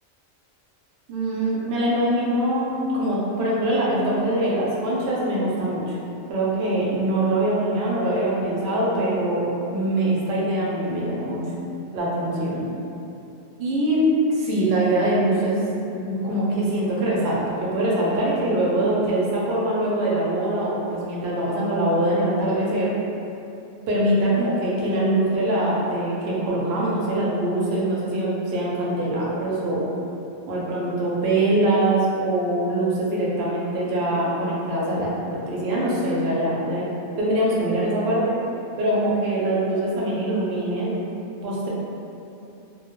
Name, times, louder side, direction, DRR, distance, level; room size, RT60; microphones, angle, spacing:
voice 1, 1.1-6.0 6.3-11.4 11.9-12.7 13.6-14.0 14.3-15.6 15.9-22.9 23.9-29.8 30.5-36.8 37.2-38.4 38.8-41.0 41.4-41.7, right 1 dB, 65° right, -6 dB, 0.7 m, -23 dB
2.2 x 2.1 x 2.9 m, 2.8 s
omnidirectional pair, 1.3 m